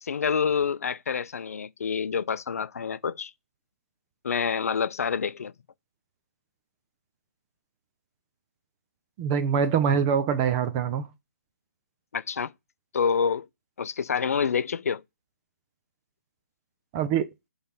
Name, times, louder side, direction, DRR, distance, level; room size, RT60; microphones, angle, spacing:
voice 1, 0.0-3.3 4.2-5.5 12.1-12.5 12.9-13.5 13.8-15.0, left 6 dB, 65° left, 0.5 m, -27 dB
voice 2, 9.2-11.1 16.9-17.3, right 7 dB, 20° right, 0.5 m, -24 dB
5.5 x 3.4 x 5.5 m
hypercardioid pair, 160°, 9 cm